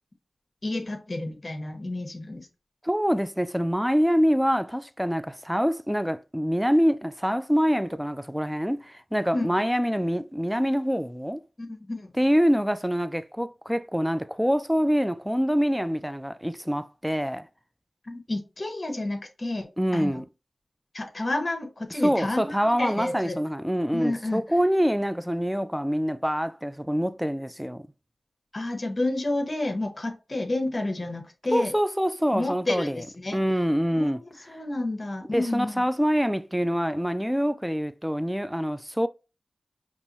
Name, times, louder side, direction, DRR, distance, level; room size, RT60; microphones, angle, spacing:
voice 1, 0.6-2.5 9.3-9.5 11.6-12.1 18.1-19.7 19.9-20.1 20.9-23.4 23.9-24.4 28.5-31.7 32.3-33.4 33.9-34.1 34.5-35.8, left 2 dB, 45° left, 1.2 m, -30 dB
voice 2, 2.8-11.4 12.1-17.5 19.8-20.2 22.0-27.9 31.5-33.0 33.3-34.2 35.3-39.1, equal, 5° right, 0.4 m, -25 dB
5.4 x 3.0 x 2.8 m
cardioid pair, 45°, 0 cm